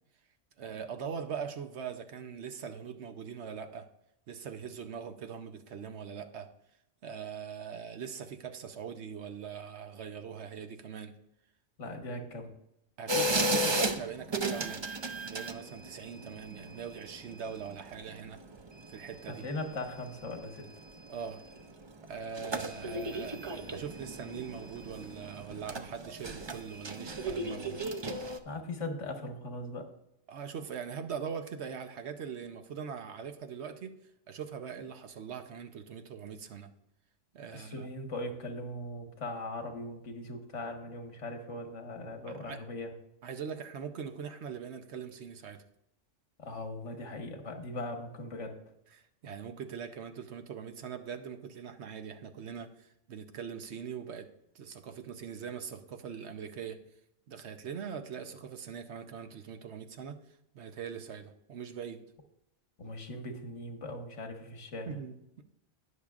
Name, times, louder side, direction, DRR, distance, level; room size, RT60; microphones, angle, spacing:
voice 1, 0.6-3.9 4.3-6.5 7.0-11.1 13.0-14.8 15.2-18.4 18.9-19.4 21.1-21.4 22.1-23.4 23.7-27.8 30.3-34.0 34.3-36.7 37.3-37.9 42.4-42.6 43.2-45.6 48.9-54.3 54.5-56.8 57.3-60.2 60.5-62.0 64.9-65.4, right 7 dB, 65° right, 7 dB, 1.0 m, -41 dB
voice 2, 11.8-12.5 19.2-20.7 28.4-29.9 37.5-42.9 46.4-48.6 62.8-64.9, left 2 dB, 75° left, 4 dB, 1.7 m, -39 dB
sound 1, 13.1-28.4, right 1 dB, 35° right, 0.5 m, -35 dB
19.5 x 6.5 x 2.4 m, 0.81 s
omnidirectional pair, 1.2 m